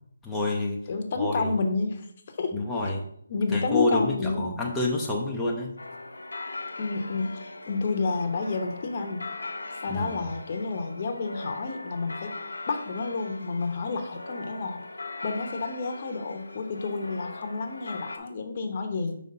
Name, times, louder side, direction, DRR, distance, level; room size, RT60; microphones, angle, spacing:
voice 1, 0.2-0.8 1.2-1.5 2.5-3.0 3.5-5.7 9.9-10.3, left 2 dB, 5° left, -5 dB, 0.6 m, -28 dB
voice 2, 0.9-2.1 2.3-2.6 3.3-4.4 6.8-9.3 9.8-12.3 12.7-14.8 15.2-19.1, left 4 dB, 40° left, 5 dB, 0.8 m, -30 dB
sound 1, 5.8-18.2, left 2 dB, 90° left, 0.9 m, -40 dB
5.4 x 3.3 x 5.3 m, 0.70 s
figure-of-eight pair, 160°, 0 cm